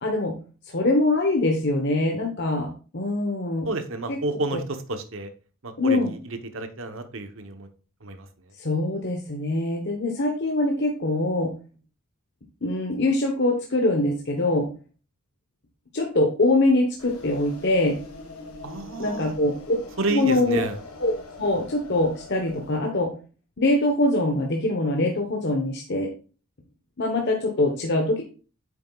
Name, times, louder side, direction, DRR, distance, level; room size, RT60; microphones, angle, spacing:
voice 1, 0.0-0.3 0.7-3.7 4.1-4.2 4.5-4.6 5.8-6.1 8.6-11.5 12.6-14.7 15.9-18.0 19.0-19.7 20.1-20.6 21.0-21.1 21.4-23.1 23.6-26.1 27.0-28.2, left 2 dB, 50° left, 1 dB, 1.1 m, -23 dB
voice 2, 3.6-5.3 5.6-7.7 8.0-8.3 18.6-19.3 20.0-20.8, right 2 dB, 60° right, 8 dB, 1.0 m, -30 dB
sound 1, 17.0-22.8, left 3 dB, 85° left, 1.4 m, -43 dB
8.7 x 6.8 x 2.4 m, 0.36 s
head